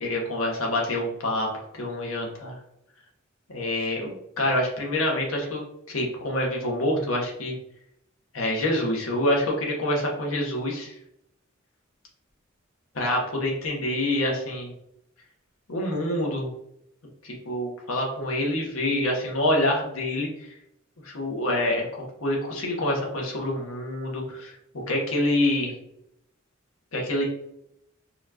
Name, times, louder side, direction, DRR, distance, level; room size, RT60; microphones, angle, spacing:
voice 1, 0.0-1.5 1.7-2.6 3.5-7.5 8.3-10.9 12.9-14.7 15.7-16.5 17.2-20.3 21.0-24.5 24.9-25.7 26.9-27.2, left 1 dB, 90° left, -1 dB, 1.1 m, -26 dB
4.2 x 2.4 x 2.8 m, 0.78 s
head